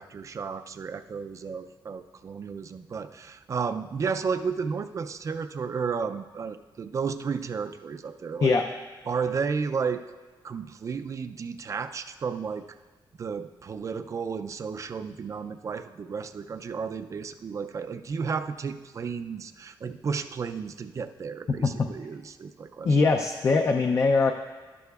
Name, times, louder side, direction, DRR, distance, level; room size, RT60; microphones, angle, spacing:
voice 1, 0.0-8.5 9.1-10.0 10.4-12.6 13.2-23.0, right 5 dB, 40° right, 9 dB, 0.4 m, -33 dB
voice 2, 22.8-24.3, left 4 dB, 40° left, 5 dB, 0.4 m, -21 dB
12.0 x 11.0 x 2.4 m, 1.3 s
wide cardioid pair, 155°, 8 cm